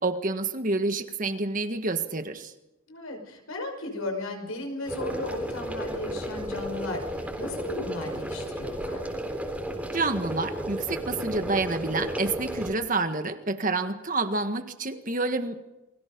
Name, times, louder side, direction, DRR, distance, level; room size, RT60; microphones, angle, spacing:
voice 1, 0.0-2.5 9.9-15.6, right 3 dB, 35° right, 8 dB, 1.7 m, -28 dB
voice 2, 2.9-9.0, left 2 dB, 75° left, 3 dB, 5.9 m, -35 dB
sound 1, 4.9-12.7, equal, 5° right, 3.9 m, -33 dB
29.5 x 22.5 x 5.3 m, 0.97 s
head